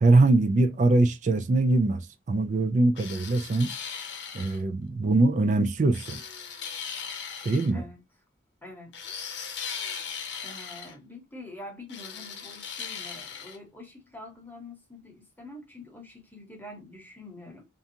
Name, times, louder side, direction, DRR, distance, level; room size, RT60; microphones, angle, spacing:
voice 1, 0.0-3.7 4.3-6.2 7.4-7.8, right 2 dB, 40° right, 0.3 m, -22 dB
sound 1, 3.0-4.6 5.9-7.7 8.9-10.9 11.9-13.6, left 7 dB, 65° left, 0.7 m, -38 dB
voice 2, 8.6-9.2 10.4-17.7, left 1 dB, 10° left, 0.9 m, -45 dB
2.5 x 2.3 x 2.7 m
head